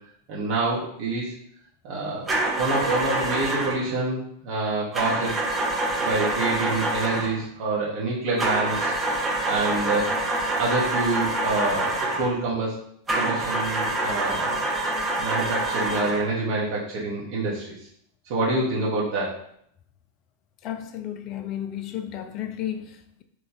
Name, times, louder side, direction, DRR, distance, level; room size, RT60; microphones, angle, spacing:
voice 1, 0.3-1.3 1.8-2.3 2.6-5.4 6.0-8.9 9.5-10.1 10.6-12.8 13.1-14.6 15.2-17.7 18.3-19.4, right 2 dB, 45° right, 0.9 m, -27 dB
sound 1, 2.3-3.9 4.9-7.4 8.4-12.4 13.1-16.3, right 2 dB, 15° right, 0.6 m, -26 dB
voice 2, 20.6-23.2, left 11 dB, 35° left, 0.3 m, -33 dB
3.0 x 2.3 x 3.8 m
figure-of-eight pair, 90°, 0 cm